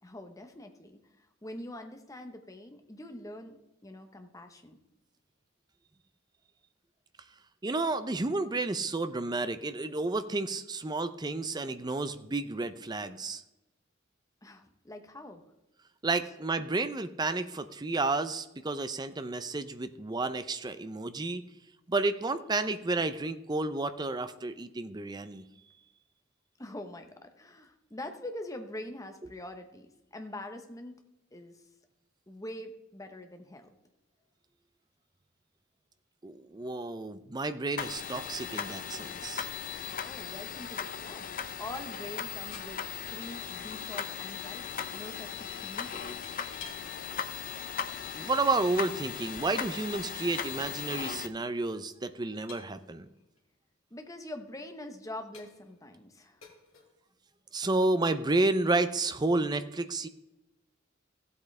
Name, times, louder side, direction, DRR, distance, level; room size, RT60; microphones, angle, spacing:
voice 1, 0.0-4.8 14.4-15.4 26.6-31.0 31.3-31.6 32.3-33.7 40.0-41.3 41.6-46.1 53.9-56.4, left 1 dB, 15° left, 6 dB, 1.0 m, -44 dB
voice 2, 7.6-13.4 16.0-21.4 21.9-25.4 36.2-39.5 48.1-53.1 57.5-60.1, right 3 dB, 20° right, 12 dB, 0.5 m, -31 dB
sound 1, 37.8-51.3, left 7 dB, 45° left, 0.5 m, -38 dB
sound 2, 39.9-40.9 41.1-41.2 41.5-43.7 44.0-44.3 45.9-46.9 47.7-47.8 50.3-50.4 50.6-50.8 51.5-51.7 52.5-53.4 54.0-54.1 54.7-54.8 55.3-55.8 56.4-56.9, left 5 dB, 90° left, 2.1 m, -53 dB
15.5 x 8.2 x 3.3 m, 0.95 s
head